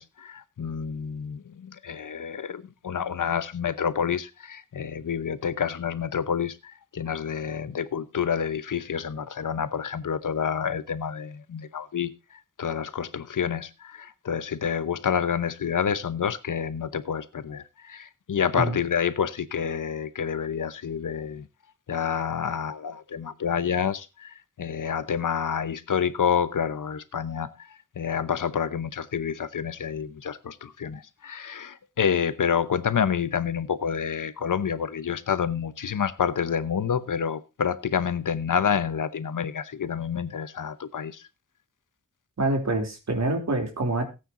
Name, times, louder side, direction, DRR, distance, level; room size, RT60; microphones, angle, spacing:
voice 1, 0.0-12.1 12.6-21.5 21.9-27.7 28.0-41.2, left 7 dB, 80° left, 1.0 m, -28 dB
voice 2, 42.4-44.0, right 2 dB, 60° right, 3.0 m, -26 dB
17.5 x 9.1 x 2.6 m
wide cardioid pair, 110°, 31 cm